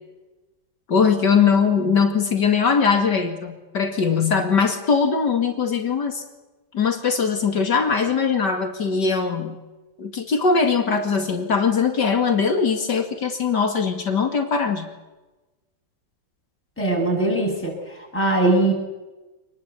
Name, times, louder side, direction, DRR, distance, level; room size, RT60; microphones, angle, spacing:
voice 1, 0.9-6.2 6.7-9.6 10.0-14.9, left 5 dB, 60° left, 5 dB, 2.8 m, -21 dB
voice 2, 16.8-18.7, right 2 dB, 5° left, -2 dB, 7.5 m, -21 dB
26.5 x 20.5 x 8.4 m, 1.1 s
omnidirectional pair, 2.1 m